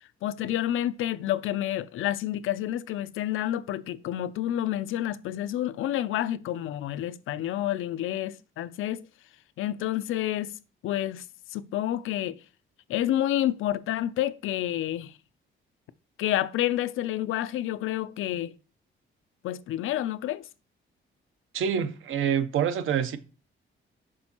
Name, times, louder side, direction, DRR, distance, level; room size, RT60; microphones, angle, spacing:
voice 1, 0.2-9.0 9.6-10.5 10.8-11.2 11.5-12.4 12.9-15.1 16.2-18.5 19.4-20.4, left 12 dB, 85° left, 0.4 m, -29 dB
voice 2, 21.5-23.2, right 8 dB, 80° right, 0.8 m, -26 dB
6.2 x 6.1 x 2.9 m
wide cardioid pair, 165°, 20 cm